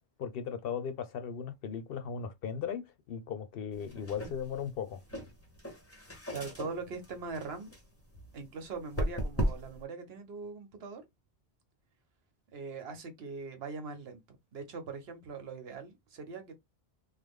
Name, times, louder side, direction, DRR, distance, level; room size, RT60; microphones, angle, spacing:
voice 1, 0.2-2.8 3.1-5.0, left 7 dB, 70° left, 0.7 m, -37 dB
sound 1, 3.7-9.8, equal, 15° left, 0.7 m, -38 dB
voice 2, 6.3-7.7 8.3-11.0 12.5-16.5, right 4 dB, 75° right, 1.0 m, -41 dB
3.2 x 2.0 x 3.4 m
omnidirectional pair, 1.1 m